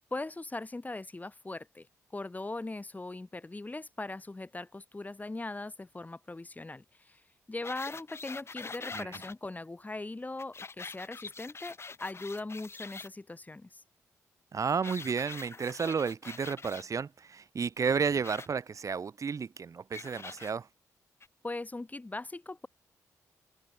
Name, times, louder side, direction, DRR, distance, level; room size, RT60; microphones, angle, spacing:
voice 1, 0.1-1.9 2.1-7.2 7.5-13.8 21.4-22.7, left 2 dB, 25° left, 7.4 m, -40 dB
sound 1, 7.6-9.3 10.4-13.1 14.8-16.8 18.2-18.5 19.9-20.5 21.2-21.3, left 4 dB, 40° left, 1.8 m, -44 dB
voice 2, 14.5-20.7, right 6 dB, 50° right, 2.9 m, -32 dB
supercardioid pair, 55°, 7 cm